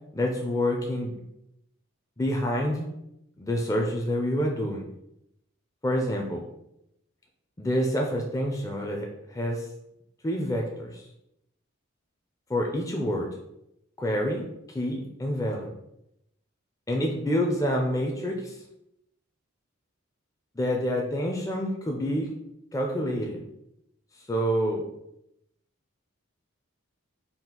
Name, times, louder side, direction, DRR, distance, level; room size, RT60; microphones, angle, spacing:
voice 1, 0.1-1.2 2.2-2.9 3.4-4.8 5.8-6.4 7.6-9.7 10.2-11.0 12.5-13.3 14.0-15.7 16.9-18.6 20.6-22.3 22.7-23.4 24.3-24.8, equal, 15° left, 0 dB, 0.4 m, -27 dB
4.2 x 2.4 x 3.7 m, 0.81 s
head